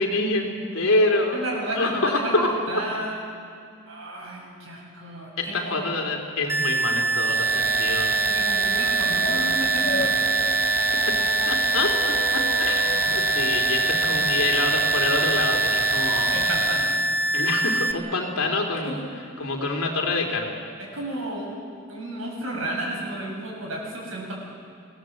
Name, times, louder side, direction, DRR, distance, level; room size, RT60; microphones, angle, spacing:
voice 1, 0.0-2.5 5.4-8.2 10.9-11.2 11.5-16.3 17.3-19.0 19.4-20.6, left 2 dB, 85° left, 2 dB, 3.3 m, -26 dB
voice 2, 1.3-3.2 3.9-5.9 8.3-10.3 12.8-13.5 16.3-16.9 18.8-19.0 20.9-21.6 21.9-24.3, right 1 dB, 75° right, -2 dB, 7.4 m, -33 dB
sound 1, 6.5-17.9, right 2 dB, 15° right, 0.8 m, -24 dB
sound 2, 7.2-17.1, right 7 dB, 40° right, 0.9 m, -29 dB
sound 3, 8.7-17.2, left 3 dB, 50° left, 1.3 m, -38 dB
25.0 x 17.0 x 7.8 m, 2.3 s
head